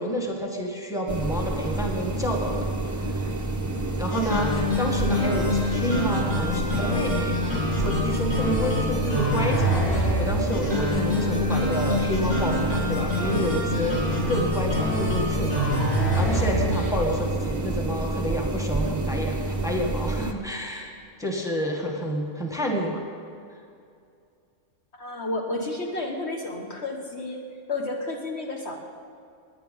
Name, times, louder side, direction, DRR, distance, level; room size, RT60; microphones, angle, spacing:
voice 1, 0.0-2.7 3.0-3.3 4.0-15.7 16.0-23.1, equal, ahead, 0 dB, 1.5 m, -29 dB
sound 1, 1.1-20.3, right 2 dB, 20° right, 0.5 m, -29 dB
sound 2, 4.1-16.9, left 1 dB, 25° left, 3.3 m, -26 dB
voice 2, 25.0-27.4 27.7-28.8, left 2 dB, 50° left, 1 dB, 1.4 m, -31 dB
19.5 x 10.0 x 5.5 m, 2.4 s
omnidirectional pair, 1.6 m